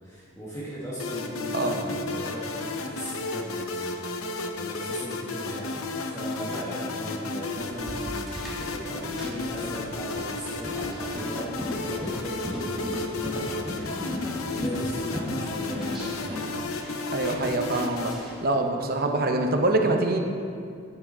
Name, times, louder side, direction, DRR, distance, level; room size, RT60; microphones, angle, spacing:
voice 1, 0.0-16.4, equal, 15° left, -9 dB, 1.4 m, -37 dB
sound 1, 1.0-18.1, left 3 dB, 85° left, 0.7 m, -33 dB
sound 2, 7.6-18.5, equal, ahead, 1.4 m, -37 dB
voice 2, 17.1-18.1 18.4-20.2, right 2 dB, 45° right, 4 dB, 0.7 m, -24 dB
8.8 x 6.9 x 4.3 m, 2.4 s
head